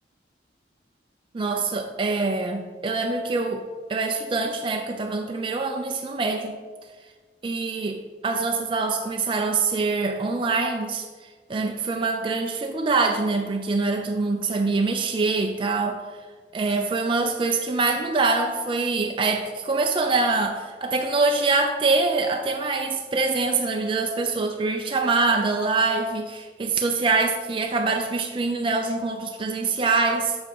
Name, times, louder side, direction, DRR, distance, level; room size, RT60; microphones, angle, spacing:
voice 1, 1.3-3.6 3.9-6.6 7.4-16.0 16.5-30.4, right 3 dB, 30° right, 3 dB, 0.4 m, -24 dB
6.3 x 5.3 x 5.5 m, 1.5 s
head